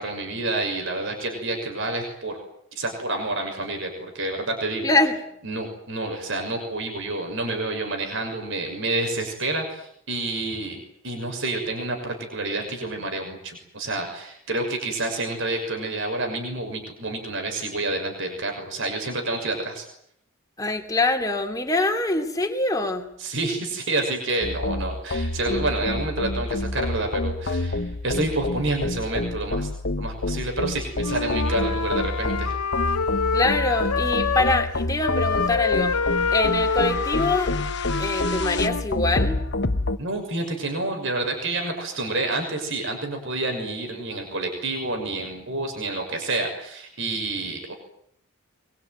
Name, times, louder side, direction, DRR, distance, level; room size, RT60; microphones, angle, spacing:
voice 1, 0.0-2.4 2.8-4.9 5.4-19.9 23.2-29.7 30.0-32.5 40.0-47.7, right 2 dB, 55° right, 3 dB, 6.2 m, -29 dB
voice 2, 4.8-5.2 20.6-23.1 33.3-36.0 36.3-37.5 38.0-39.4, left 2 dB, 15° left, 4 dB, 2.9 m, -24 dB
sound 1, 24.4-40.0, left 2 dB, 50° left, 1.2 m, -28 dB
Wind instrument woodwind instrument, 31.0-34.7 35.0-38.8, left 5 dB, 85° left, 2.0 m, -26 dB
24.0 x 23.0 x 9.4 m, 0.70 s
head